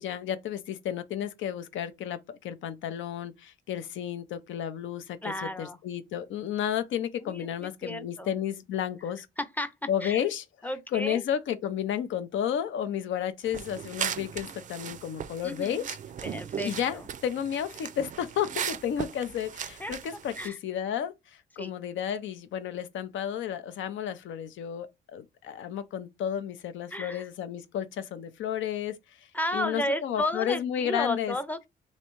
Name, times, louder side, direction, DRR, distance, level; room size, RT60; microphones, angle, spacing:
voice 1, 0.0-9.3 9.9-10.4 10.9-16.0 16.6-31.4, left 9 dB, 75° left, 0.6 m, -32 dB
voice 2, 5.2-5.8 7.2-8.3 9.4-9.7 10.0-10.2 10.6-11.2 15.4-15.9 16.2-17.0 19.8-19.9 20.4-20.6 21.6-21.7 26.9-27.2 29.3-31.7, left 1 dB, 10° left, 0.6 m, -33 dB
sound 1, 13.4-20.5, right 8 dB, 40° right, 0.4 m, -37 dB
3.2 x 2.7 x 3.0 m
cardioid pair, 90°, 20 cm